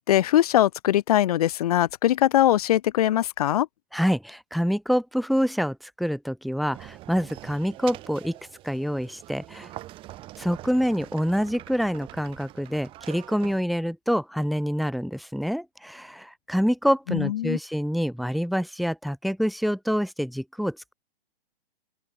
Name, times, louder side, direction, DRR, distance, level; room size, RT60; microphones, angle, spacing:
voice 1, 0.1-3.7 17.1-17.6, left 13 dB, 35° left, 1.4 m, -21 dB
voice 2, 3.9-8.4 8.6-9.7 10.4-20.9, equal, ahead, 1.8 m, -26 dB
sound 1, 6.7-13.6, right 16 dB, 15° right, 3.8 m, -44 dB
open air
hypercardioid pair, 170°, 32 cm